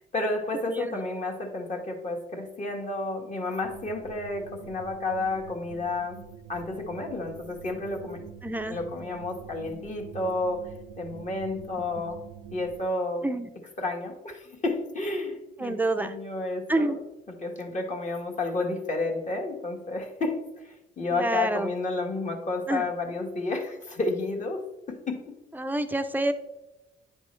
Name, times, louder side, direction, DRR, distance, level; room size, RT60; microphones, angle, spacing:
voice 1, 0.0-6.2 6.5-8.2 8.7-10.6 11.0-12.2 12.5-13.2 13.8-17.0 17.3-24.6 24.9-25.3, left 2 dB, 35° left, 1 dB, 1.6 m, -31 dB
sound 1, 3.6-12.8, right 8 dB, 90° right, 0.5 m, -46 dB
voice 2, 8.4-8.8 13.2-13.5 15.6-16.1 16.7-17.0 21.1-21.7 22.7-22.8 25.5-26.3, right 2 dB, 10° right, 8 dB, 0.6 m, -28 dB
9.7 x 5.2 x 3.2 m, 0.99 s
cardioid pair, 90°, 20 cm